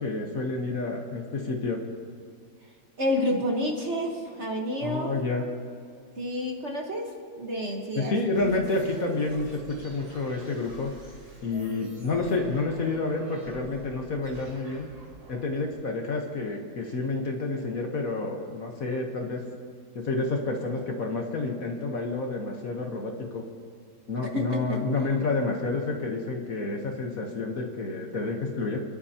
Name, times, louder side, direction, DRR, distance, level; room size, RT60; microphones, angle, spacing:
voice 1, 0.0-1.8 4.8-5.5 7.9-10.9 11.4-14.9 15.3-19.4 19.9-23.4 24.1-28.8, left 3 dB, 50° left, 2 dB, 1.4 m, -29 dB
voice 2, 3.0-5.2 6.2-8.2 24.3-24.4 24.7-24.8, left 1 dB, 40° right, 1 dB, 1.4 m, -29 dB
sound 1, 8.3-16.5, right 2 dB, 85° right, 5.2 m, -48 dB
27.5 x 11.0 x 2.8 m, 2.2 s
omnidirectional pair, 2.1 m